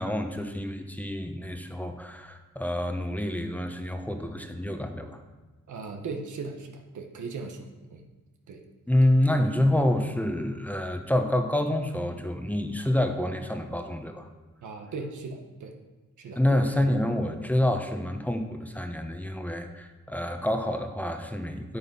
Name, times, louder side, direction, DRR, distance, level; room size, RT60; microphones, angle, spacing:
voice 1, 0.0-5.2 8.9-14.3 16.3-21.8, left 1 dB, 5° left, 5 dB, 1.1 m, -27 dB
voice 2, 5.7-8.0 8.5-8.6 14.6-15.7 16.2-16.4, right 4 dB, 85° right, 3 dB, 1.3 m, -38 dB
8.5 x 8.2 x 5.5 m, 1.2 s
cardioid pair, 80°, 29 cm